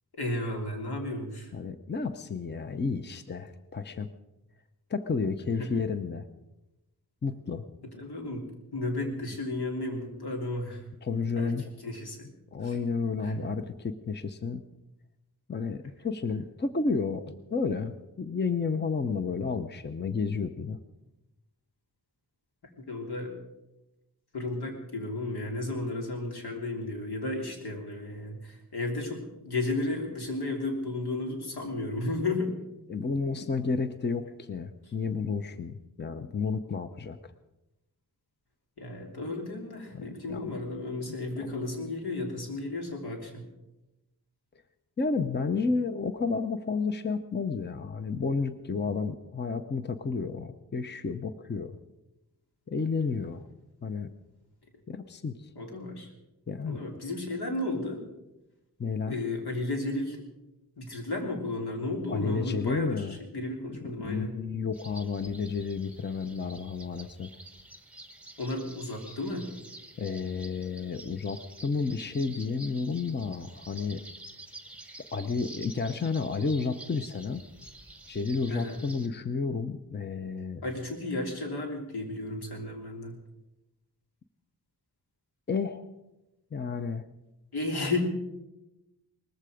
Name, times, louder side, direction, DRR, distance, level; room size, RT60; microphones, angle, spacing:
voice 1, 0.2-1.5 5.6-5.7 7.9-8.5 8.7-10.8 11.4-11.5 11.8-12.3 12.6-12.8 13.2-13.5 22.9-23.3 24.3-32.5 38.8-43.5 55.5-56.1 56.7-58.0 59.1-60.2 60.8-64.3 68.4-69.5 78.5-78.8 80.6-83.1 87.5-88.0, left 2 dB, 85° left, 2 dB, 3.3 m, -33 dB
voice 2, 1.5-4.1 4.9-6.2 7.2-7.6 11.0-11.7 12.5-14.6 15.5-20.8 32.9-37.2 39.9-40.5 41.1-41.5 45.0-51.8 52.7-53.4 53.8-54.1 54.9-55.5 56.5-56.9 58.8-59.2 62.1-63.2 64.0-67.3 70.0-74.0 75.1-77.4 78.1-80.6 85.5-85.9 86.5-87.0, left 4 dB, 30° left, 10 dB, 0.7 m, -31 dB
sound 1, 64.7-79.1, right 1 dB, 5° right, 1.2 m, -49 dB
19.5 x 14.5 x 5.0 m, 0.98 s
wide cardioid pair, 150°, 38 cm